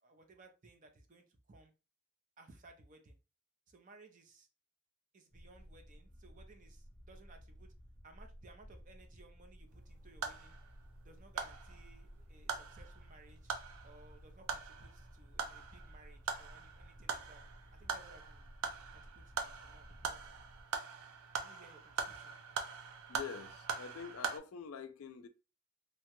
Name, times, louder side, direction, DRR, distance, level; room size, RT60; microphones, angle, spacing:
voice 1, 0.0-1.7 2.4-3.2 3.7-4.5 5.1-7.7 8.0-10.5 11.0-13.5 13.8-17.4 17.7-18.5 18.9-20.2 21.4-22.4, right 2 dB, 35° right, 0.5 m, -60 dB
sound 1, 5.3-20.6, equal, 10° left, 0.5 m, -57 dB
sound 2, 9.7-24.4, right 6 dB, 85° right, 0.5 m, -43 dB
voice 2, 23.1-25.3, left 6 dB, 80° left, 0.4 m, -46 dB
2.8 x 2.2 x 2.9 m
head